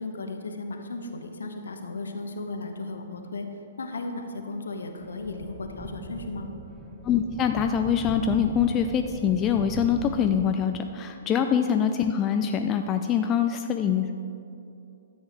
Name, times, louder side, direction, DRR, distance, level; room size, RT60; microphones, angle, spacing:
voice 1, 0.0-3.5 3.8-6.5 11.3-11.5, left 2 dB, 70° left, 5 dB, 1.0 m, -35 dB
sound 1, 5.0-11.1, right 3 dB, 15° right, 0.8 m, -41 dB
voice 2, 7.0-14.1, left 8 dB, 25° left, 6 dB, 0.4 m, -24 dB
13.0 x 8.0 x 3.5 m, 2.6 s
figure-of-eight pair, 120°, 0 cm